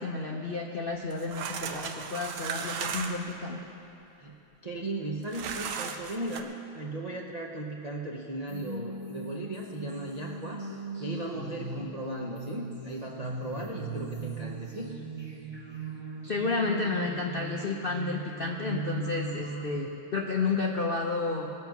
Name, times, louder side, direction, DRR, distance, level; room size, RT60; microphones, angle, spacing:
voice 1, 0.0-3.6 16.3-21.5, left 3 dB, 65° left, 0 dB, 0.5 m, -31 dB
sound 1, 1.1-3.3 5.3-6.4, right 6 dB, 75° right, 1.6 m, -36 dB
voice 2, 4.6-10.6 11.0-15.1, right 1 dB, 55° right, -2 dB, 0.4 m, -37 dB
sound 2, 8.5-19.8, right 3 dB, 15° right, 1.1 m, -39 dB
21.0 x 7.5 x 5.9 m, 2.8 s
omnidirectional pair, 2.3 m